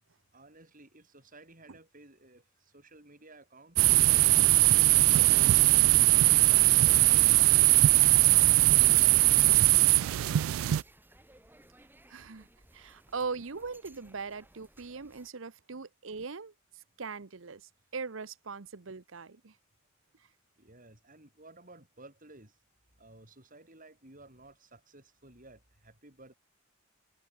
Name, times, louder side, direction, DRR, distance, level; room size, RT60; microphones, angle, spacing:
voice 1, 0.3-3.8 8.8-9.6 9.9-10.9 12.5-12.7 20.6-22.6 23.0-26.3, right 2 dB, 40° right, 7.7 m, -55 dB
sound 1, 3.8-10.8, right 18 dB, 90° right, 0.3 m, -21 dB
sound 2, 6.9-15.3, right 1 dB, 10° right, 7.5 m, -61 dB
voice 2, 12.1-12.5 12.7-19.5, right 4 dB, 75° right, 0.9 m, -40 dB
head